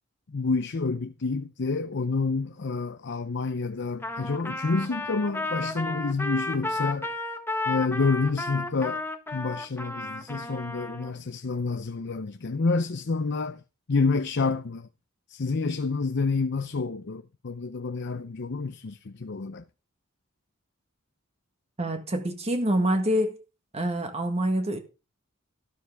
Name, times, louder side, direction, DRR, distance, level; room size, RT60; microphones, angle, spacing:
voice 1, 0.3-7.1 7.7-9.0 9.3-13.6 13.9-14.9 15.3-19.6, left 4 dB, 55° left, 0.7 m, -28 dB
Trumpet, 4.0-11.1, left 2 dB, 10° left, 1.4 m, -33 dB
voice 2, 21.8-23.4 23.7-24.8, right 1 dB, 30° right, 1.6 m, -26 dB
12.5 x 12.5 x 3.5 m
head